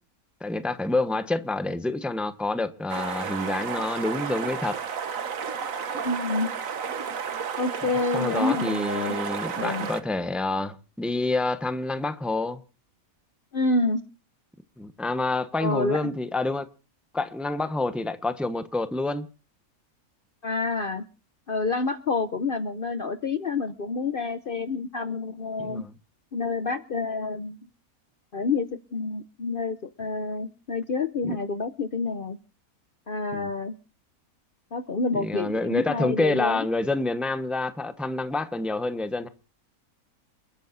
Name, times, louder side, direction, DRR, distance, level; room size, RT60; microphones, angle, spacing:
voice 1, 0.4-4.8 8.1-12.6 14.8-16.7 17.1-19.3 25.6-25.9 31.2-31.4 33.3-33.5 35.1-39.3, left 2 dB, ahead, 0.9 m, -28 dB
sound 1, 2.9-10.0, right 6 dB, 65° right, 1.6 m, -32 dB
voice 2, 6.0-6.5 7.6-9.1 9.6-9.9 13.5-14.0 15.6-16.0 20.4-21.0 21.5-25.8 26.3-27.6 28.3-32.4 33.1-33.7 34.7-36.6, left 3 dB, 45° left, 0.8 m, -28 dB
29.5 x 10.5 x 2.6 m
omnidirectional pair, 1.5 m